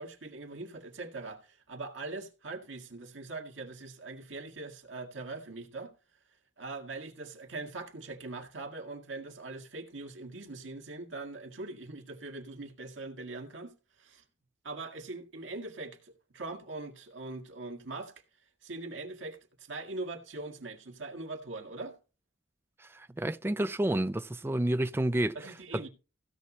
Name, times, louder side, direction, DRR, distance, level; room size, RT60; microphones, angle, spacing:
voice 1, 0.0-5.9 6.6-14.2 14.6-18.1 18.6-22.0 25.3-25.9, right 3 dB, 85° right, 2.1 m, -42 dB
voice 2, 22.9-25.8, right 1 dB, 10° right, 0.4 m, -30 dB
16.0 x 6.2 x 4.2 m
head